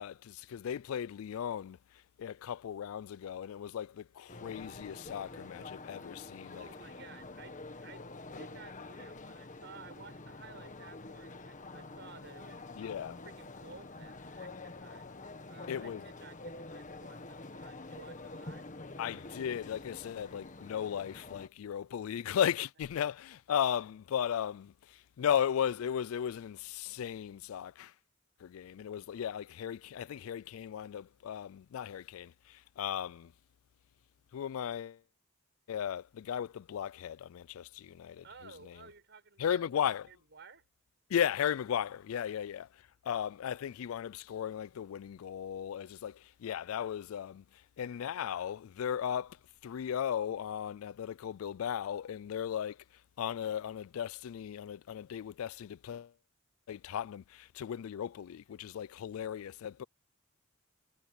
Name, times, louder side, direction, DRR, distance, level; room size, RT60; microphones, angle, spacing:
voice 1, 0.0-1.8 2.2-6.7 12.8-13.2 15.7-16.0 19.0-27.9 28.4-33.3 34.3-35.0 35.7-38.2 39.4-40.1 41.1-42.7 43.0-47.4 47.8-49.4 49.6-52.8 53.2-56.1 56.7-59.8, left 9 dB, 90° left, 0.3 m, -36 dB
sound 1, 4.3-21.5, left 2 dB, 40° left, 1.5 m, -47 dB
voice 2, 6.5-8.1 8.4-15.1 15.5-18.7 38.2-40.7 42.4-42.5, right 4 dB, 60° right, 6.3 m, -55 dB
head